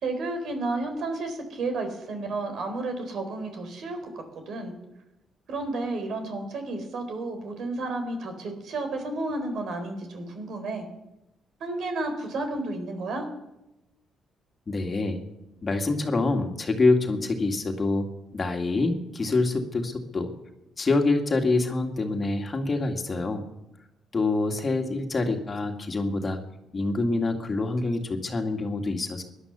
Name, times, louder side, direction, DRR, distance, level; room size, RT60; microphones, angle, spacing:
voice 1, 0.0-4.7 5.5-10.9 11.6-13.3, right 2 dB, 70° right, 6 dB, 3.9 m, -32 dB
voice 2, 14.7-15.2 15.6-18.1 18.3-20.3 20.8-23.5 24.1-26.4 26.7-29.2, left 3 dB, 35° left, 4 dB, 2.1 m, -26 dB
17.5 x 11.0 x 6.8 m, 0.93 s
cardioid pair, 90°, 0 cm